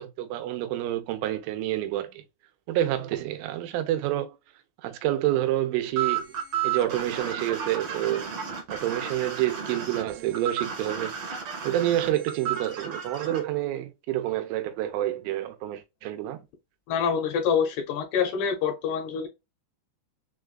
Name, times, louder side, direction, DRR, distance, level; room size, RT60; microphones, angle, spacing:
voice 1, 0.0-2.2 2.7-4.4 4.8-6.3 6.6-8.3 8.7-11.2 11.6-16.4, right 13 dB, 90° right, 3.3 m, -28 dB
sound 1, 6.0-13.4, right 8 dB, 65° right, 1.5 m, -32 dB
voice 2, 16.9-19.3, left 7 dB, 70° left, 2.8 m, -26 dB
7.0 x 2.4 x 2.3 m
omnidirectional pair, 5.4 m